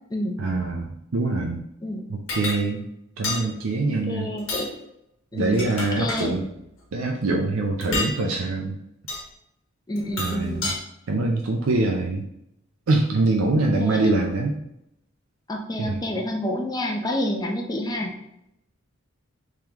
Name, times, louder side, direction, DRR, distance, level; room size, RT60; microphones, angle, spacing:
voice 1, 0.4-1.6 2.1-2.8 3.2-4.3 5.3-6.4 6.9-8.8 10.2-10.7 11.1-12.2 12.9-14.6 15.8-16.0, right 2 dB, 80° right, 1 dB, 0.5 m, -24 dB
sound 1, 2.3-2.6 3.2-3.4 4.4-4.7 5.4-6.3 7.8-8.1 9.1-9.2 10.0-10.8, left 2 dB, 70° left, 1.2 m, -29 dB
voice 2, 4.1-4.7 5.3-6.4 7.9-8.1 9.9-10.7 13.8-14.1 15.5-18.1, left 1 dB, 20° left, 1 dB, 0.6 m, -28 dB
3.7 x 3.1 x 2.9 m, 0.80 s
head